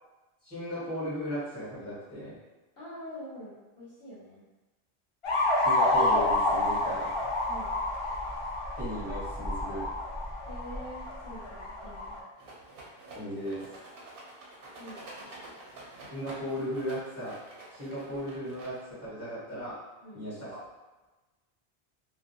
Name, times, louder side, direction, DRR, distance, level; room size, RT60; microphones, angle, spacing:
voice 1, 0.4-2.4 5.6-7.1 8.8-9.9 13.1-13.6 16.1-17.3 17.7-19.8 20.1-20.6, equal, 15° left, -12 dB, 1.3 m, -36 dB
voice 2, 2.8-4.4 7.5-7.8 10.5-12.1 14.8-15.5 20.0-20.3, equal, 70° left, -9 dB, 0.9 m, -45 dB
sound 1, 5.2-12.2, left 1 dB, 55° left, 0.3 m, -29 dB
Rattle, 12.4-19.1, right 2 dB, 65° right, 0.7 m, -48 dB
2.4 x 2.0 x 2.6 m, 1.1 s
omnidirectional pair, 1.1 m